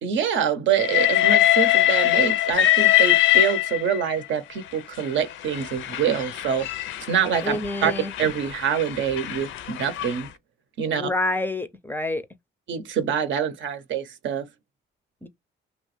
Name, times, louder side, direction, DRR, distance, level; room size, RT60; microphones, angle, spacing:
voice 1, 0.0-6.7 7.1-7.9 8.2-10.3 10.8-11.1 12.7-14.5, right 8 dB, 70° right, 0.7 m, -25 dB
Train, 0.7-4.1 5.0-10.2, left 14 dB, 75° left, 0.4 m, -22 dB
voice 2, 7.4-8.1 10.9-12.2 15.2-15.3, left 2 dB, 10° left, 0.4 m, -28 dB
2.9 x 2.2 x 3.1 m
cardioid pair, 90°, 20 cm